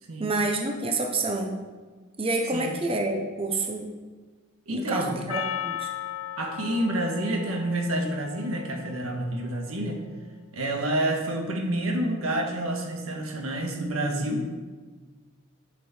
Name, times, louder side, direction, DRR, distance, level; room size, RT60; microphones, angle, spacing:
voice 1, 0.2-1.6 2.2-3.9 4.7-5.9, right 2 dB, 25° right, 3 dB, 0.8 m, -28 dB
voice 2, 4.7-5.2 6.4-10.0 10.5-14.5, right 1 dB, 90° right, 1 dB, 1.6 m, -28 dB
Percussion, 5.3-9.8, left 11 dB, 75° left, 0.8 m, -37 dB
11.0 x 6.5 x 4.4 m, 1.4 s
head